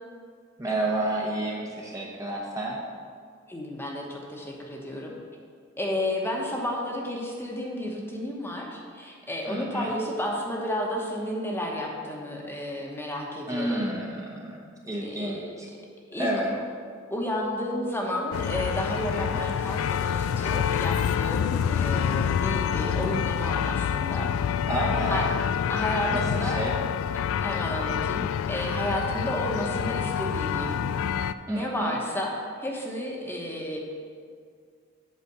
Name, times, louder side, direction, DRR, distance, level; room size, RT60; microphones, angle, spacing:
voice 1, 0.6-2.8 9.5-9.9 13.5-15.7 16.2-16.5 19.1-19.4 24.7-25.3 26.1-26.7 31.5-32.0, right 1 dB, 15° right, -2 dB, 0.9 m, -30 dB
voice 2, 3.5-5.2 5.8-13.8 15.0-15.5 16.1-16.6 17.1-24.3 25.1-25.3 25.7-26.6 27.4-30.8 31.5-33.8, equal, 10° left, -1 dB, 1.0 m, -32 dB
sound 1, 18.3-31.3, left 8 dB, 75° left, 0.3 m, -27 dB
8.4 x 5.0 x 6.7 m, 2.1 s
head